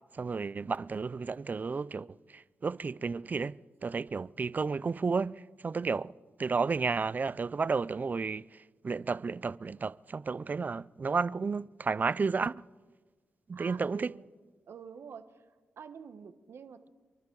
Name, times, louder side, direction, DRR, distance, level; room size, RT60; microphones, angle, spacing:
voice 1, 0.1-6.1 6.4-12.6 13.5-14.1, right 4 dB, 40° right, 0.4 m, -32 dB
voice 2, 13.5-14.2 14.7-15.4 15.8-16.9, right 6 dB, 70° right, 1.1 m, -47 dB
28.5 x 12.0 x 3.9 m
cardioid pair, 55°, 4 cm